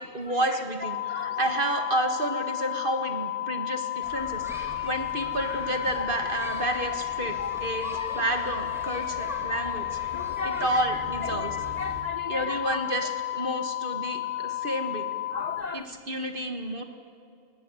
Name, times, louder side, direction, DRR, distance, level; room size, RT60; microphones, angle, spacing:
voice 1, 0.0-10.0 10.4-11.6 12.3-15.1 15.7-16.8, right 1 dB, 35° right, 5 dB, 1.9 m, -30 dB
sound 1, 0.8-15.6, left 15 dB, 85° left, 1.3 m, -32 dB
sound 2, 4.0-12.0, equal, ahead, 3.2 m, -41 dB
voice 2, 10.1-10.8 11.4-12.8 15.3-15.8, left 3 dB, 50° left, 10 dB, 0.5 m, -35 dB
21.5 x 17.0 x 9.7 m, 2.4 s
omnidirectional pair, 1.5 m